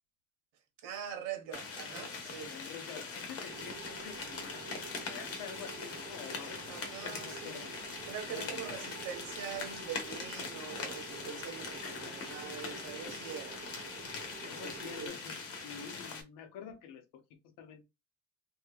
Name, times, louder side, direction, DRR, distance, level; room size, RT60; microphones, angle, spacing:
voice 1, 0.8-2.5 6.7-7.6 8.1-13.6 14.6-15.1, right 8 dB, 85° right, 1.1 m, -43 dB
sound 1, 1.5-16.2, left 4 dB, 45° left, 1.0 m, -42 dB
voice 2, 2.2-4.7 5.0-7.7 8.3-8.9 11.8-12.3 14.4-17.0 17.4-17.8, left 7 dB, 90° left, 0.9 m, -48 dB
sound 2, 3.5-15.1, right 7 dB, 30° right, 0.4 m, -50 dB
3.2 x 2.8 x 2.3 m
cardioid pair, 165°, 32 cm